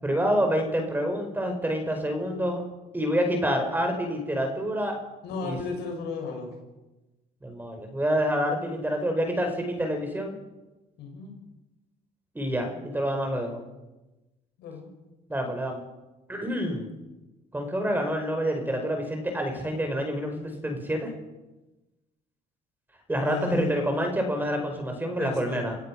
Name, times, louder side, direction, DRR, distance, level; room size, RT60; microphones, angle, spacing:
voice 1, 0.0-2.6 2.9-4.9 5.4-5.6 7.4-10.4 12.3-13.6 15.3-15.8 16.3-16.9 17.5-21.1 23.1-25.8, equal, 10° right, 4 dB, 4.9 m, -27 dB
voice 2, 5.2-6.5 11.0-11.4 14.6-14.9 23.2-23.8 25.2-25.7, left 5 dB, 80° left, 2 dB, 6.5 m, -34 dB
27.5 x 16.5 x 6.0 m, 1.1 s
cardioid pair, 110°, 17 cm